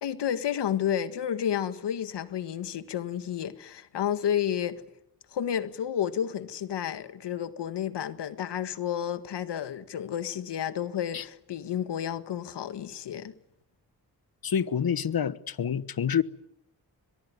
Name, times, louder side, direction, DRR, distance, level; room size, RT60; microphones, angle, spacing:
voice 1, 0.0-4.8 5.3-13.3, left 9 dB, 90° left, 1.7 m, -31 dB
voice 2, 14.4-16.2, left 8 dB, 60° left, 1.3 m, -27 dB
22.5 x 22.5 x 9.6 m
cardioid pair, 55°, 40 cm